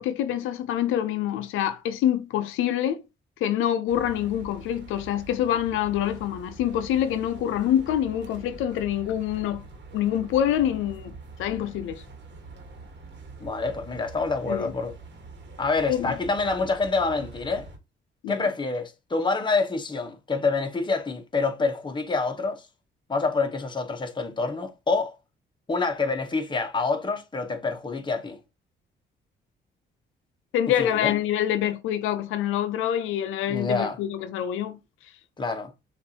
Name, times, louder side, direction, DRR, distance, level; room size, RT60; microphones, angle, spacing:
voice 1, 0.0-3.0 3.4-9.6 9.9-12.0 14.5-14.7 15.9-16.2 18.2-18.5 30.5-34.8, left 11 dB, 90° left, 0.5 m, -26 dB
sound 1, 3.9-17.8, right 3 dB, 60° right, 1.2 m, -44 dB
voice 2, 13.4-14.9 15.6-17.7 18.3-22.7 23.1-25.1 25.7-28.4 30.8-31.2 33.5-34.0 35.4-35.7, left 3 dB, 25° left, 1.0 m, -27 dB
6.7 x 2.6 x 2.8 m
cardioid pair, 90°, 20 cm